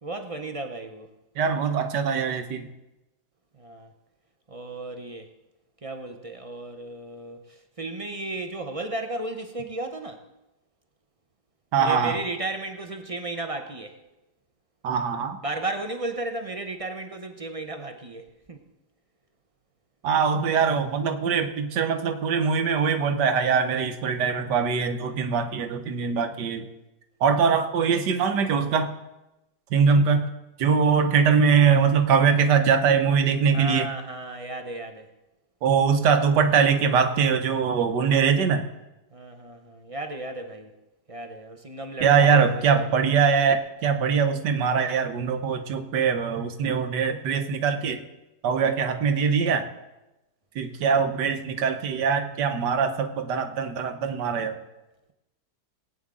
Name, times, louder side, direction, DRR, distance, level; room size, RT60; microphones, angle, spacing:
voice 1, 0.0-1.1 3.6-3.9 4.5-5.3 5.8-10.2 11.8-14.0 15.4-18.6 33.5-35.1 39.1-40.7 41.1-42.8, right 2 dB, 35° right, 6 dB, 0.5 m, -34 dB
voice 2, 1.4-2.7 11.7-12.2 14.8-15.4 20.0-26.7 27.2-28.9 29.7-30.3 30.6-33.9 35.6-38.7 42.0-48.0 48.4-49.7 50.5-54.6, right 6 dB, 80° right, 8 dB, 1.5 m, -22 dB
19.0 x 9.0 x 3.8 m, 0.99 s
omnidirectional pair, 1.8 m